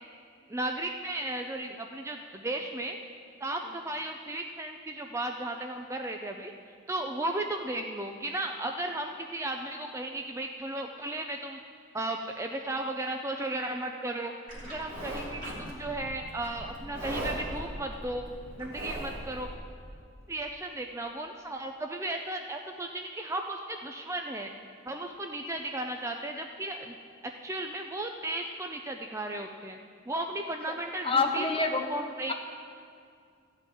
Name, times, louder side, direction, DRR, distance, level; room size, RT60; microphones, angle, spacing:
voice 1, 0.5-3.0 3.4-6.5 6.9-11.6 11.9-14.3 14.6-18.3 18.6-19.5 20.3-24.5 24.9-27.0 27.4-29.8 30.1-31.5 31.9-32.3, right 1 dB, 15° right, 3 dB, 0.4 m, -35 dB
Livestock farm animals working animals, 14.5-19.5, right 1 dB, 40° right, 2.9 m, -39 dB
voice 2, 31.0-31.9, left 4 dB, 25° left, 3 dB, 0.9 m, -26 dB
14.0 x 5.3 x 8.9 m, 2.2 s
head